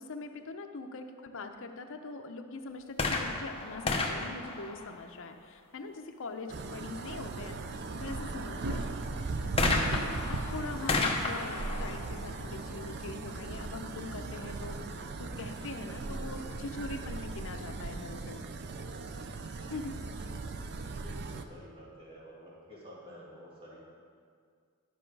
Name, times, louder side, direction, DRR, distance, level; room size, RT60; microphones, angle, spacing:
voice 1, 0.0-7.6 7.9-8.9 9.7-18.4 19.7-20.0, left 3 dB, 65° left, 6 dB, 0.7 m, -42 dB
sound 1, 2.9-5.5 9.6-13.2 14.0-14.1, left 3 dB, 25° left, 0.9 m, -33 dB
sound 2, 6.5-21.4, right 3 dB, 50° right, 0.5 m, -38 dB
voice 2, 8.6-9.1 18.7-19.0 21.0-23.8, equal, 25° right, -6 dB, 2.1 m, -51 dB
11.0 x 6.1 x 4.7 m, 2.1 s
head